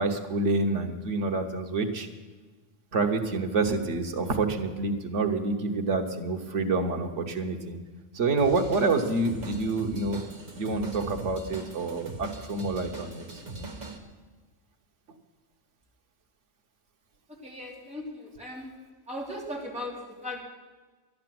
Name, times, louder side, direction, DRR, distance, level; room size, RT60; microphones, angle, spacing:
voice 1, 0.0-2.1 2.9-7.8 8.1-10.2 10.5-13.7, right 3 dB, 90° right, 5 dB, 1.5 m, -28 dB
Drum kit / Drum, 8.4-14.0, right 2 dB, 40° right, 1.4 m, -41 dB
voice 2, 17.4-18.7 19.1-20.4, left 1 dB, 5° right, -4 dB, 3.0 m, -37 dB
12.0 x 10.5 x 7.7 m, 1.3 s
omnidirectional pair, 1.2 m